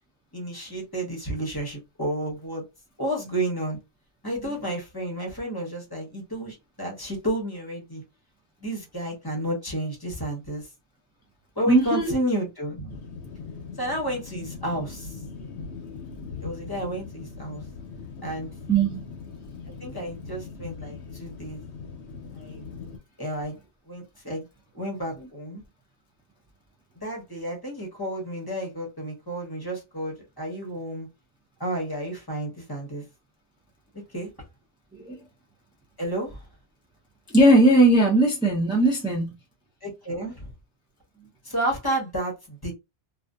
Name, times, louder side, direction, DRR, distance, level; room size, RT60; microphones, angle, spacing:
voice 1, 0.3-2.6 3.0-3.8 4.2-8.0 8.6-10.7 11.6-13.0 13.8-15.2 16.4-17.6 18.2-18.5 19.8-21.6 22.3-22.6 23.2-23.6 23.9-24.4 24.7-25.6 27.0-31.1 31.6-33.0 34.1-34.3 36.0-36.4 39.8-40.5 41.4-42.7, right 1 dB, 20° left, 0.8 m, -31 dB
voice 2, 11.7-12.1 18.7-19.0 34.9-35.2 37.3-39.3, right 1 dB, 5° right, 0.4 m, -19 dB
sound 1, 12.9-23.0, left 5 dB, 70° left, 0.9 m, -40 dB
2.5 x 2.4 x 2.3 m
omnidirectional pair, 1.2 m